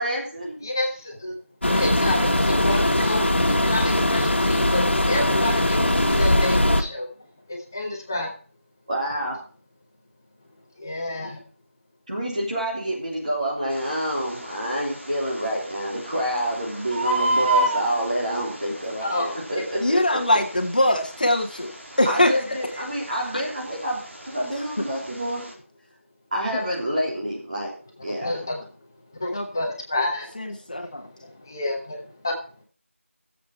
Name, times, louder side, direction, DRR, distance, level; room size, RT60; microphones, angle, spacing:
voice 1, 0.0-0.6 8.9-9.4 12.1-20.0 22.0-25.4 26.3-27.7 28.0-28.4, equal, 35° right, -3 dB, 3.3 m, -27 dB
voice 2, 0.6-1.3 1.6-7.1 7.5-8.3 10.8-11.4 19.0-19.3 28.2-28.6 29.2-30.3 31.2-32.3, left 1 dB, 15° left, 0 dB, 1.2 m, -29 dB
sound 1, 1.6-6.8, left 1 dB, 55° left, 1.8 m, -20 dB
Bird, 13.7-25.5, right 2 dB, 60° right, 4.0 m, -32 dB
voice 3, 19.8-22.3 28.2-28.3 29.3-29.5 30.4-31.1, left 1 dB, 40° left, 4 dB, 1.4 m, -22 dB
15.5 x 7.9 x 4.5 m, 0.41 s
figure-of-eight pair, 175°, 7 cm